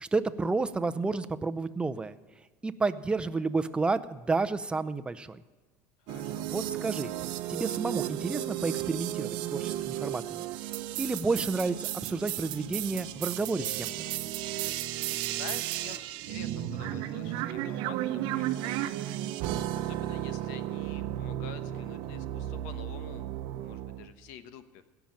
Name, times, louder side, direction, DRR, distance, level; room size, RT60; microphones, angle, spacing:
voice 1, 0.0-2.1 2.6-5.4 6.5-7.1 7.5-10.4 11.0-13.9, right 3 dB, 10° right, 10 dB, 0.6 m, -31 dB
voice 2, 6.0-6.5 15.3-19.3 19.7-23.3 23.6-24.8, left 8 dB, 75° left, 11 dB, 1.1 m, -48 dB
sound 1, 6.1-24.1, right 13 dB, 65° right, 0.8 m, -34 dB
17.0 x 5.9 x 8.9 m, 1.3 s
supercardioid pair, 110°, 8 cm